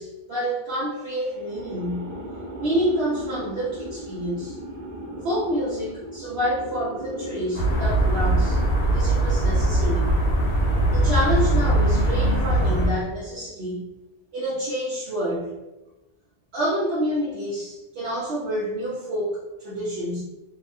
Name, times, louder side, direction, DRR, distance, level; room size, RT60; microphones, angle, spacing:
voice 1, 0.0-2.2 2.6-4.6 5.2-10.2 10.9-13.9 14.3-15.6 16.5-20.2, equal, 65° right, -8 dB, 0.9 m, -28 dB
sound 1, 1.2-12.4, right 1 dB, 45° right, 0.6 m, -38 dB
sound 2, 7.5-12.9, right 1 dB, 60° left, 0.9 m, -21 dB
2.7 x 2.5 x 2.2 m, 0.99 s
omnidirectional pair, 1.2 m